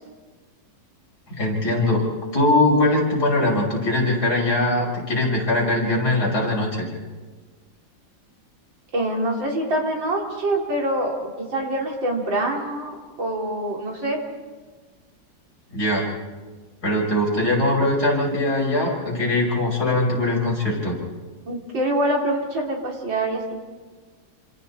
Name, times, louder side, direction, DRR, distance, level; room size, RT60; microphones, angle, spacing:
voice 1, 1.3-2.1 2.3-6.9 15.7-16.1 16.8-21.0, left 1 dB, 55° left, -2 dB, 6.7 m, -21 dB
voice 2, 8.9-14.2 21.5-23.6, right 1 dB, 80° right, -1 dB, 4.3 m, -25 dB
28.5 x 26.5 x 4.4 m, 1.4 s
omnidirectional pair, 2.0 m